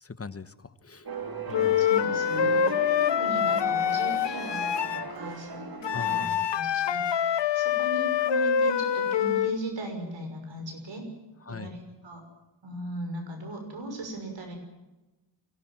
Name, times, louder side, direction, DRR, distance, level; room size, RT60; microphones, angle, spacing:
voice 1, 0.0-1.1 1.5-1.8 5.9-6.4 11.5-11.7, left 4 dB, 35° left, 12 dB, 1.1 m, -40 dB
sound 1, 1.1-6.3, right 3 dB, 55° right, 2.5 m, -37 dB
Wind instrument woodwind instrument, 1.5-5.0 5.8-9.6, left 8 dB, 80° left, 1.0 m, -25 dB
voice 2, 1.8-11.1 11.5-12.2 12.6-14.6, right 1 dB, 90° right, 4 dB, 6.2 m, -38 dB
23.5 x 17.5 x 7.6 m, 1.0 s
wide cardioid pair, 85°, 43 cm